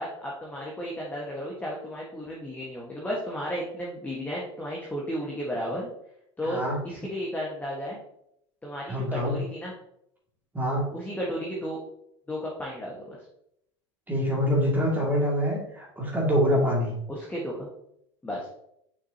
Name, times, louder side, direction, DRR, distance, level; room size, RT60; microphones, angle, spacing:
voice 1, 0.0-5.9 6.4-6.6 6.8-8.0 8.6-9.7 10.9-11.8 12.3-13.2 17.1-17.7 18.2-18.5, equal, 10° left, -3 dB, 1.6 m, -33 dB
voice 2, 6.4-6.8 8.9-9.4 10.5-10.9 14.1-16.9, equal, 10° right, -3 dB, 2.4 m, -25 dB
7.0 x 5.8 x 2.9 m, 0.76 s
hypercardioid pair, 80°, 15 cm